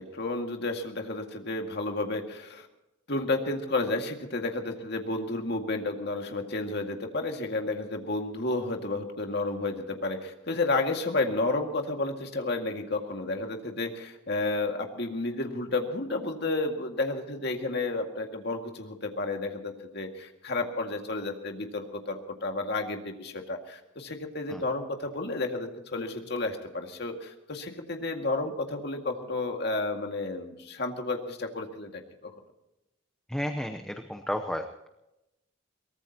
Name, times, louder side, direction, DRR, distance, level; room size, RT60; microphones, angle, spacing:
voice 1, 0.0-2.7 3.1-32.3, left 2 dB, 55° left, 3 dB, 2.1 m, -31 dB
voice 2, 33.3-34.9, equal, 5° left, 5 dB, 0.8 m, -33 dB
23.0 x 18.5 x 2.9 m, 0.92 s
head